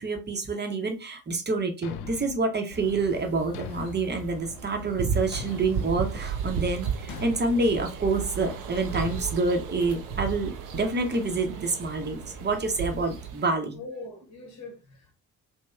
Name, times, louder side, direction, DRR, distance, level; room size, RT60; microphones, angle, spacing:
voice 1, 0.0-13.8, right 3 dB, 25° right, 0.8 m, -27 dB
Thump thud, 1.8-2.4 3.5-4.1 5.3-5.9 7.1-7.5 8.9-9.3, left 9 dB, 60° left, 0.5 m, -40 dB
sound 1, 2.7-13.3, right 4 dB, 80° right, 0.8 m, -43 dB
sound 2, 5.0-13.5, right 7 dB, 50° right, 0.5 m, -34 dB
voice 2, 13.7-15.1, left 2 dB, 40° left, 1.1 m, -41 dB
3.0 x 2.6 x 2.3 m
figure-of-eight pair, 45°, 43 cm